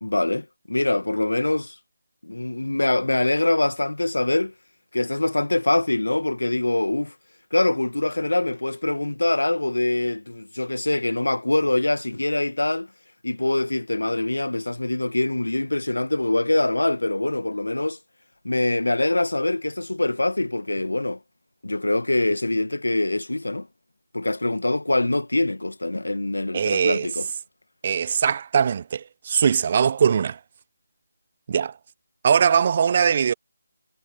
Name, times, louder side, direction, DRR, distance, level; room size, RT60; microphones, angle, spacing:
voice 1, 0.0-1.7 2.2-4.5 4.9-7.1 7.5-12.9 13.2-18.0 18.4-21.2 21.6-23.7 24.1-27.3, left 2 dB, 80° left, 1.3 m, -24 dB
voice 2, 26.5-27.1 27.8-30.4 31.5-31.7 32.2-33.3, right 7 dB, 40° right, 0.7 m, -21 dB
figure-of-eight pair, 155°, 0 cm